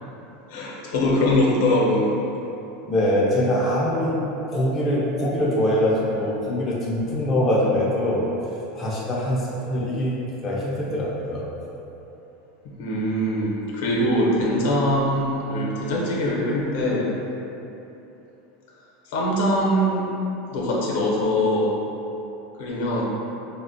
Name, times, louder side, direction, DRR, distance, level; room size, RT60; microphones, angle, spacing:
voice 1, 0.5-2.2 12.8-17.1 19.1-20.0 20.5-21.8 22.6-23.0, left 1 dB, 70° left, -3 dB, 0.6 m, -22 dB
voice 2, 2.9-4.2 4.5-10.2 10.4-11.4, left 1 dB, 20° left, -6 dB, 0.4 m, -23 dB
3.3 x 2.1 x 2.5 m, 3.0 s
supercardioid pair, 160°, 0 cm